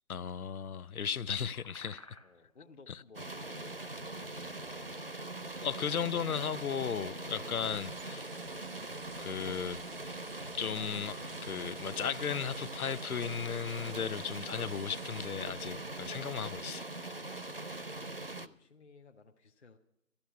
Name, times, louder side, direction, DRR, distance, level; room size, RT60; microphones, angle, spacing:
voice 1, 0.1-2.0 2.9-3.0 5.6-8.3 9.2-9.8 10.5-16.8, left 7 dB, 85° left, 0.6 m, -36 dB
sound 1, 1.2-13.9, left 1 dB, 25° left, 0.7 m, -61 dB
voice 2, 2.2-4.3 18.0-19.8, left 4 dB, 50° left, 0.9 m, -58 dB
sound 2, 3.1-18.5, right 2 dB, 45° right, 0.4 m, -42 dB
sound 3, 7.6-15.3, right 7 dB, 90° right, 0.6 m, -54 dB
14.5 x 11.5 x 5.7 m
figure-of-eight pair, 165°, 42 cm